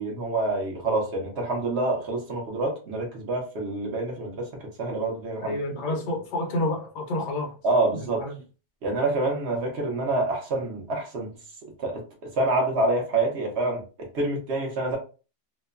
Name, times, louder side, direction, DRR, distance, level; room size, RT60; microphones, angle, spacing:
voice 1, 0.0-4.5 4.8-5.6 5.9-6.0 7.6-8.2 8.8-11.3 11.8-15.0, right 2 dB, 50° right, 0.9 m, -27 dB
voice 2, 5.4-7.5 7.9-8.4, left 1 dB, 55° left, 0.5 m, -29 dB
2.9 x 2.1 x 2.3 m
omnidirectional pair, 1.7 m